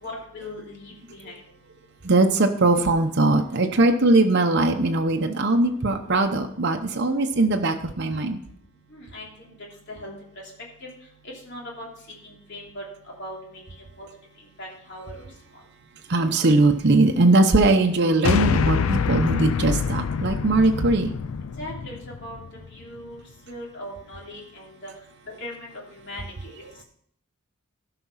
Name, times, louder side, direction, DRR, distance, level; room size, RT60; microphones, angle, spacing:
voice 1, 0.0-1.3 8.9-9.5 9.9-10.1 10.8-10.9 11.4-11.9 12.2-12.8 13.2-13.6 14.0-14.1 14.6-15.2 21.6-22.4 22.7-24.9 25.4-26.5, left 1 dB, 55° left, -2 dB, 3.1 m, -39 dB
voice 2, 2.0-8.4 16.1-21.1, right 2 dB, 50° right, 3 dB, 0.8 m, -20 dB
sound 1, 18.2-22.7, left 6 dB, 75° left, 0.4 m, -25 dB
12.0 x 5.9 x 5.6 m, 0.68 s
head